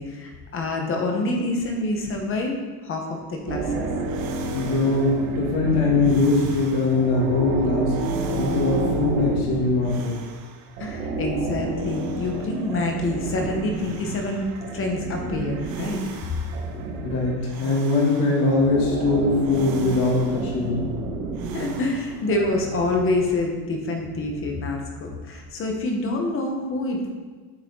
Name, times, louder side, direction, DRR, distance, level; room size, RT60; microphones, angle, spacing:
voice 1, 0.0-2.6 2.8-3.9 10.8-16.0 21.5-27.1, left 2 dB, 30° left, 2 dB, 1.1 m, -27 dB
sound 1, 3.5-10.5 10.8-23.3, right 3 dB, 80° right, 1.3 m, -30 dB
voice 2, 4.5-8.0 8.3-10.2 17.0-20.9, left 3 dB, 55° left, -3 dB, 2.4 m, -22 dB
8.9 x 6.5 x 3.8 m, 1.4 s
cardioid pair, 175°, 44 cm